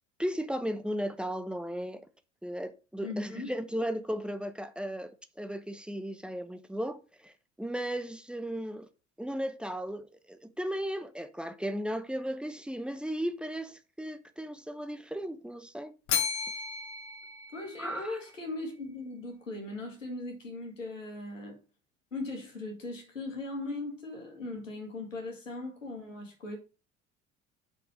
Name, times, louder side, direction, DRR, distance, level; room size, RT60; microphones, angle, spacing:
voice 1, 0.2-2.0 2.4-8.9 9.2-15.9 17.8-18.2, equal, 5° right, 1.0 m, -35 dB
voice 2, 3.0-3.5 17.5-21.6 22.1-26.6, left 2 dB, 85° left, 2.1 m, -39 dB
Bell, 16.1-18.3, left 7 dB, 50° left, 2.1 m, -34 dB
6.0 x 5.2 x 6.1 m
figure-of-eight pair, 55°, 38 cm